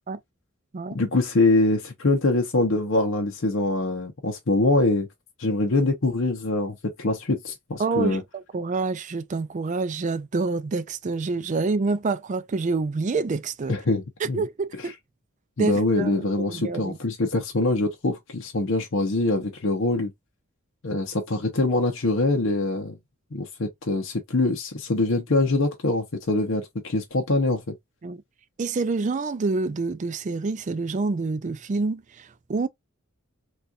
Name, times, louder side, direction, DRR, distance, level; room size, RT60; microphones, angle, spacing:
voice 1, 0.9-5.1 5.4-8.2 13.7-14.5 14.8-14.9 15.6-20.1 20.8-23.0 23.3-27.7, left 2 dB, 70° left, 0.8 m, -24 dB
voice 2, 7.8-13.7 14.2-14.9 15.6-17.0 28.0-28.2 28.6-32.7, right 3 dB, 35° right, 0.4 m, -27 dB
4.1 x 2.4 x 2.4 m
head